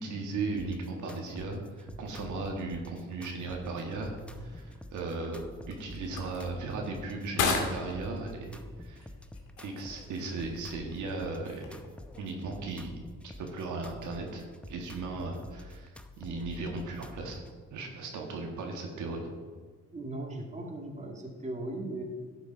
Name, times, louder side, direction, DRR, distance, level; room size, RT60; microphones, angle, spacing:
voice 1, 0.0-5.4 5.7-9.1 9.6-11.6 12.2-12.9 13.4-17.4 17.7-19.2, right 3 dB, 75° right, 1 dB, 1.8 m, -37 dB
sound 1, 0.6-17.6, left 2 dB, 5° left, 0.7 m, -48 dB
sound 2, 3.0-12.2, left 4 dB, 85° left, 1.9 m, -39 dB
voice 2, 19.9-22.0, right 2 dB, 25° right, 1 dB, 2.0 m, -38 dB
12.5 x 7.0 x 4.6 m, 1.5 s
cardioid pair, 90°, 30 cm